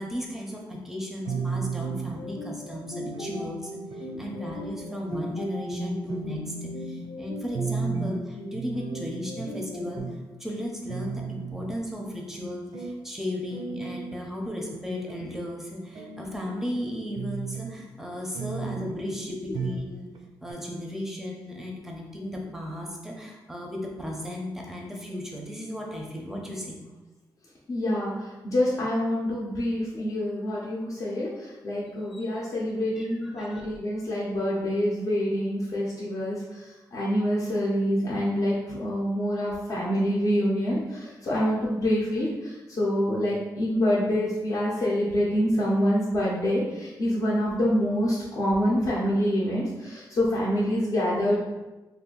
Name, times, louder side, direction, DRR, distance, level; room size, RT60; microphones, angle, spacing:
voice 1, 0.0-10.1 10.4-20.1 20.4-26.8 32.1-32.2 33.0-33.6, left 1 dB, 5° right, 0 dB, 0.6 m, -35 dB
sound 1, 1.2-2.2 2.7-3.5 3.9-4.6 5.1-5.4 5.7-5.8 6.1-7.1 7.5-8.2 8.5-9.5 10.0-10.2 10.6-10.7 10.9-11.8 12.3-13.0 13.5-14.2 14.7-15.3 15.7-16.8 17.2-17.8 18.3-19.0 19.5-19.9 20.2-20.3 20.5-20.6, right 5 dB, 65° right, 0.4 m, -35 dB
sound 2, 1.3-10.0, equal, 75° left, 0.8 m, -37 dB
voice 2, 27.7-51.4, equal, 45° left, -7 dB, 0.7 m, -26 dB
2.6 x 2.5 x 3.7 m, 1.1 s
cardioid pair, 110°, 8 cm